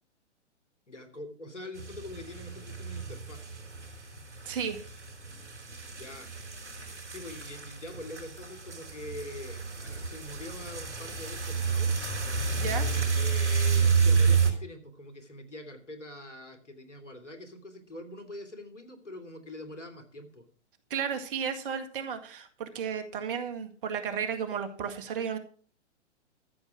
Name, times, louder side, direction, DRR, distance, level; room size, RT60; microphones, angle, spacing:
voice 1, 0.9-3.4 5.9-6.3 7.1-12.1 12.6-20.4, left 1 dB, 85° left, 6 dB, 3.2 m, -44 dB
sound 1, 1.8-14.5, right 5 dB, 75° right, 4.2 m, -30 dB
voice 2, 4.4-4.8 12.5-12.8 20.9-25.4, right 7 dB, 50° right, 8 dB, 2.0 m, -33 dB
13.5 x 7.6 x 6.2 m, 0.42 s
figure-of-eight pair, 125°, 35 cm